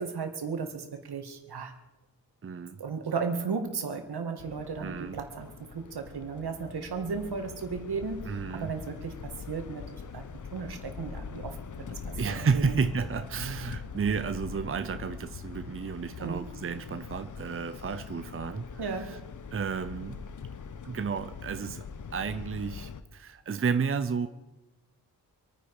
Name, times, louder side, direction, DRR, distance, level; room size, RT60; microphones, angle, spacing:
voice 1, 0.0-1.7 2.8-11.6 11.9-12.0 12.3-12.8 16.2-16.5 18.8-19.3, right 5 dB, 70° right, 2.1 m, -35 dB
voice 2, 2.4-2.8 4.8-5.2 8.2-8.7 12.2-19.2 19.5-20.2 20.8-21.9 22.1-24.3, right 5 dB, 35° right, 0.7 m, -32 dB
sound 1, 4.4-23.0, left 6 dB, 50° left, 0.9 m, -42 dB
26.0 x 9.7 x 4.9 m
cardioid pair, 80°, 40 cm